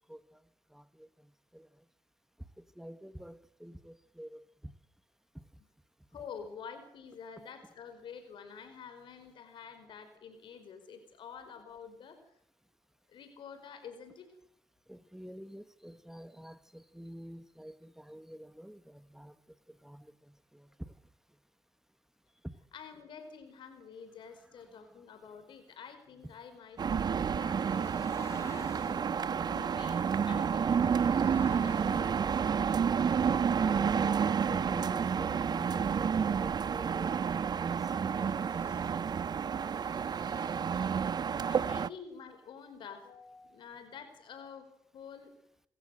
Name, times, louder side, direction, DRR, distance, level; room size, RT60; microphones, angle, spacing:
voice 1, 0.1-0.4 0.7-1.7 2.6-4.7 14.9-19.4 19.7-20.9 22.4-22.5 24.3-24.8 26.2-26.3 30.3-30.4 33.3-39.2 39.9-40.0, equal, 5° right, 12 dB, 1.7 m, -48 dB
voice 2, 6.1-12.3 13.1-14.3 22.7-32.6 41.5-45.3, left 6 dB, 80° left, 9 dB, 4.9 m, -49 dB
sound 1, 26.8-41.9, right 7 dB, 55° right, 0.8 m, -30 dB
sound 2, 27.6-29.1 30.9-32.3 38.1-38.9 39.6-40.7, left 3 dB, 35° left, 4.3 m, -53 dB
26.5 x 14.5 x 7.8 m, 0.72 s
supercardioid pair, 55°, 8 cm